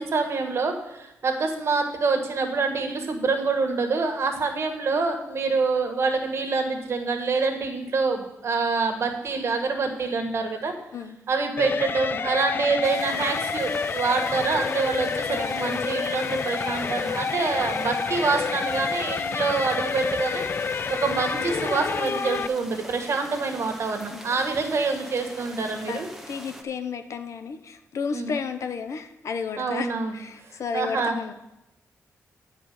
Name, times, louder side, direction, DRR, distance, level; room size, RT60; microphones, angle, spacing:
voice 1, 0.0-10.7 11.3-20.4 20.9-26.1 28.1-28.3 29.6-30.2 30.7-31.2, right 4 dB, 55° right, 4 dB, 1.6 m, -26 dB
sound 1, 11.6-22.5, left 5 dB, 40° left, 0.3 m, -29 dB
sound 2, 12.8-26.6, right 1 dB, 5° right, 1.0 m, -43 dB
voice 2, 15.3-15.6 24.1-24.3 25.7-26.0 26.3-31.3, left 6 dB, 70° left, 9 dB, 0.9 m, -33 dB
10.0 x 4.9 x 7.7 m, 0.89 s
wide cardioid pair, 130°, 5 cm